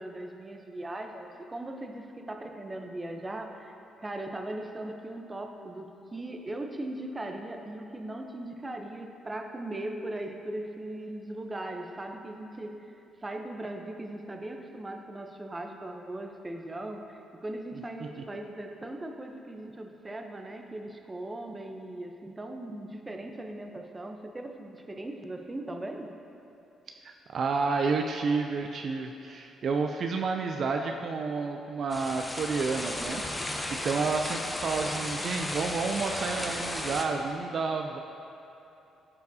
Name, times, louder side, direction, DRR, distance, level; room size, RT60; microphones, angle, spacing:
voice 1, 0.0-3.7 4.0-26.2, right 1 dB, 20° right, 4 dB, 0.6 m, -39 dB
voice 2, 27.0-38.0, right 4 dB, 55° right, 4 dB, 0.4 m, -30 dB
sound 1, 31.9-37.0, left 1 dB, 15° left, 0.7 m, -34 dB
13.5 x 4.6 x 2.7 m, 2.9 s
cardioid pair, 90°, 0 cm